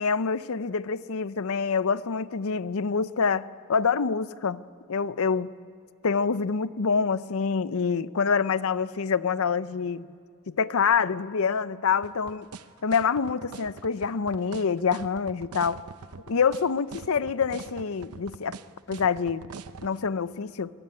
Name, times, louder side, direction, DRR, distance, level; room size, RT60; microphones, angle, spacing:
voice 1, 0.0-4.6 4.9-5.5 6.0-10.1 10.5-12.5 12.8-15.8 16.3-18.6 18.9-19.5 19.8-20.7, left 5 dB, 65° left, 16 dB, 0.6 m, -26 dB
sound 1, 12.0-19.9, right 4 dB, 85° right, 0.8 m, -42 dB
25.5 x 19.0 x 9.8 m, 2.3 s
head